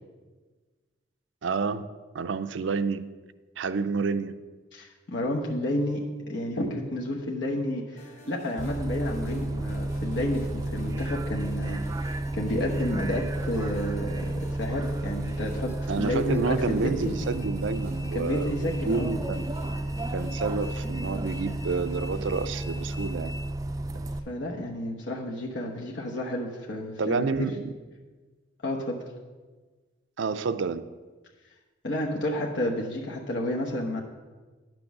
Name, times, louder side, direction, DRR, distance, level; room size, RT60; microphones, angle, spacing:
voice 1, 1.4-1.9 2.1-3.1 3.6-4.3 15.9-19.5 20.1-23.3 27.0-27.7 30.2-30.8, right 4 dB, 75° right, 12 dB, 0.5 m, -29 dB
voice 2, 4.7-17.2 18.1-19.2 24.3-27.5 28.6-29.1 31.8-34.0, left 1 dB, 70° left, -1 dB, 1.0 m, -31 dB
sound 1, 8.0-23.1, equal, 40° left, 1.3 m, -49 dB
Bus, 8.6-24.2, right 1 dB, 20° right, 0.4 m, -32 dB
10.5 x 6.1 x 6.0 m, 1.3 s
head